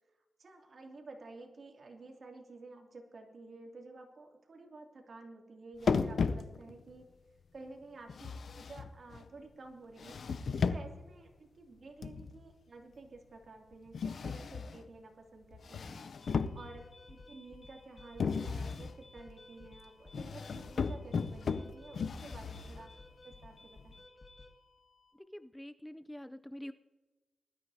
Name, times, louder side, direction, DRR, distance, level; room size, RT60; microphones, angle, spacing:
voice 1, 0.4-7.1 7.5-10.2 10.6-23.0 23.2-24.0, right 3 dB, 60° right, 1 dB, 2.7 m, -52 dB
sound 1, 5.8-6.9 8.1-9.3 10.0-11.1 12.0-12.5 13.9-14.9 15.5-17.0 18.2-19.0 20.1-22.9, left 5 dB, 70° left, 0.6 m, -35 dB
sound 2, 16.2-25.1, left 3 dB, 45° left, 1.7 m, -56 dB
voice 2, 25.3-26.7, equal, 10° left, 10 dB, 0.5 m, -46 dB
21.0 x 13.0 x 2.8 m, 1.2 s
cardioid pair, 80°, 0 cm